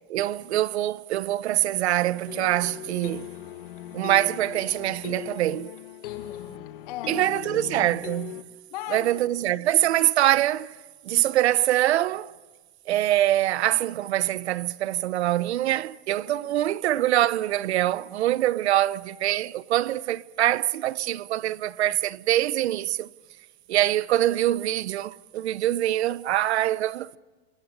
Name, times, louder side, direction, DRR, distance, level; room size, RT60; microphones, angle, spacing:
voice 1, 0.1-3.3 3.9-5.7 7.1-8.4 8.9-10.7 11.0-12.3 12.9-23.1 23.7-27.2, right 13 dB, 85° right, 0.9 m, -24 dB
sound 1, 2.3-8.4, left 12 dB, 55° left, 1.4 m, -39 dB
voice 2, 6.0-7.3 8.7-9.6 16.4-16.8 18.7-18.9, left 10 dB, 40° left, 3.0 m, -39 dB
30.0 x 20.5 x 9.5 m
supercardioid pair, 180°, 32 cm